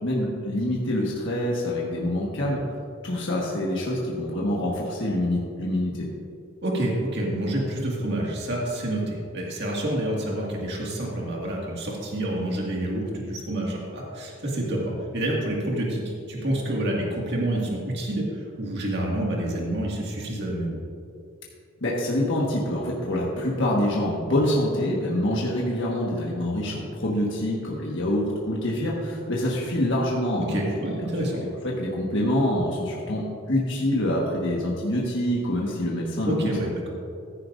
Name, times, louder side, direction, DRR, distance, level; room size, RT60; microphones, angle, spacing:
voice 1, 0.0-2.6 3.0-6.1 21.8-30.6 30.8-31.0 31.6-36.5, left 1 dB, 55° left, -4 dB, 1.4 m, -26 dB
voice 2, 6.6-16.0 16.3-20.8 30.5-31.4 36.3-36.9, right 1 dB, 50° right, -2 dB, 1.9 m, -28 dB
15.0 x 10.0 x 2.6 m, 2.5 s
head